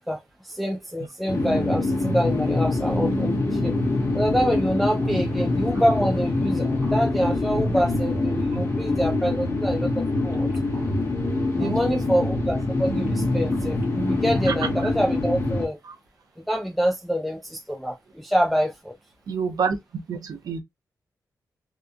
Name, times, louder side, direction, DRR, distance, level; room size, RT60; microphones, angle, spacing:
voice 1, 0.1-3.7 4.1-10.5 11.5-15.8 16.5-18.9, equal, ahead, 0.4 m, -26 dB
sound 1, 1.3-15.7, left 2 dB, 40° left, 0.9 m, -25 dB
sound 2, 1.4-14.8, right 3 dB, 30° right, 1.0 m, -37 dB
voice 2, 11.6-12.0 14.5-14.9 15.8-16.0 19.3-20.6, right 6 dB, 65° right, 0.6 m, -29 dB
2.8 x 2.2 x 2.4 m
wide cardioid pair, 125°, 7 cm